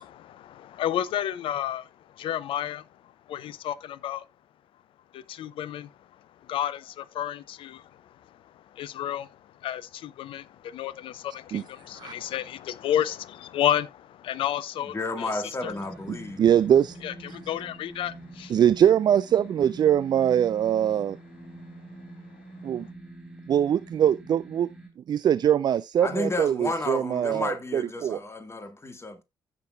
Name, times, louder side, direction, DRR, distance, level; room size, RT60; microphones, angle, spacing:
voice 1, 0.0-4.3 5.1-15.7 17.0-18.5, left 11 dB, 55° left, 0.6 m, -32 dB
voice 2, 14.9-16.4 26.0-29.2, left 2 dB, 25° left, 1.9 m, -32 dB
sound 1, 15.6-24.9, right 2 dB, 5° right, 3.8 m, -45 dB
voice 3, 16.4-16.9 18.5-21.2 22.6-22.9 23.5-24.7 25.1-28.2, right 9 dB, 40° right, 0.4 m, -22 dB
16.0 x 6.2 x 2.4 m
figure-of-eight pair, 40°, 10 cm